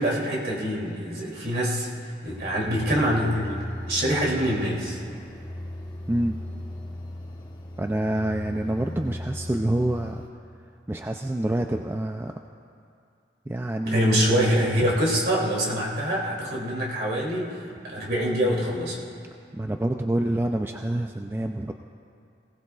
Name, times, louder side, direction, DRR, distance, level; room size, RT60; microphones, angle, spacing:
voice 1, 0.0-1.9 2.2-5.0 13.9-17.6 17.8-19.0, equal, 60° right, -3 dB, 2.7 m, -25 dB
sound 1, 2.3-10.3, left 1 dB, 25° left, 1.1 m, -38 dB
voice 2, 6.1-6.4 7.8-10.2 10.9-12.3 13.5-14.1 19.5-21.7, right 1 dB, 15° right, 4 dB, 0.3 m, -27 dB
20.0 x 17.5 x 2.3 m, 2.4 s
head